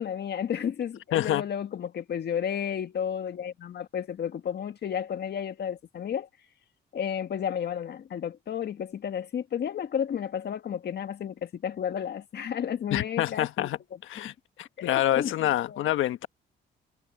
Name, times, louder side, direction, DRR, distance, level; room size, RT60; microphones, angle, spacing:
voice 1, 0.0-6.3 6.9-14.3 14.8-15.8, left 8 dB, 55° left, 1.7 m, -32 dB
voice 2, 1.1-1.4 12.9-13.8 14.0-14.3 14.6-16.3, left 13 dB, 85° left, 1.4 m, -26 dB
cardioid pair, 90°, 20 cm